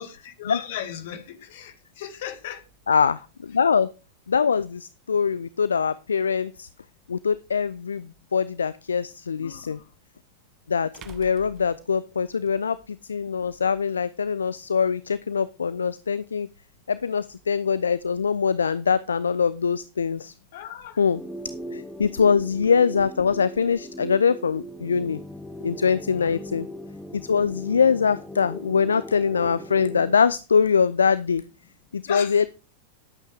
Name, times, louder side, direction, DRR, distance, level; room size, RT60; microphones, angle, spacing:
voice 1, 0.0-2.6 9.3-9.9 20.5-21.0 26.1-26.4 32.1-32.5, left 10 dB, 55° left, 2.2 m, -37 dB
voice 2, 2.9-3.9 4.3-6.7 7.1-9.8 10.7-16.5 16.9-20.3 21.0-21.2 21.7-25.2 25.6-26.7 27.1-31.4 31.9-32.5, left 6 dB, 70° left, 0.4 m, -23 dB
sound 1, 7.1-7.2 9.8-9.9 10.9-12.5, right 5 dB, 30° right, 1.2 m, -47 dB
sound 2, 21.1-30.2, left 1 dB, 5° left, 0.9 m, -39 dB
12.0 x 8.4 x 3.6 m
figure-of-eight pair, 90°, 0 cm